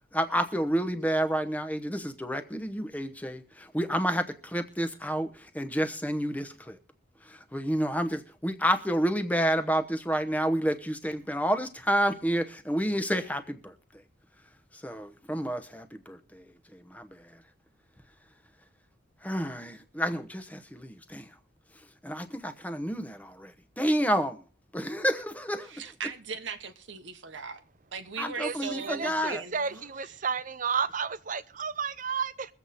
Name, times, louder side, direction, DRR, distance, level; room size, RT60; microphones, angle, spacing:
voice 1, 0.1-6.8 7.3-13.7 14.8-16.4 16.7-17.2 19.2-21.3 22.0-24.4 24.7-25.7 28.2-29.4, equal, 10° left, 0.9 m, -29 dB
voice 2, 25.6-27.6 27.9-30.2, right 6 dB, 65° right, 1.0 m, -39 dB
voice 3, 28.9-32.5, right 6 dB, 40° right, 0.6 m, -32 dB
22.5 x 7.9 x 4.2 m
head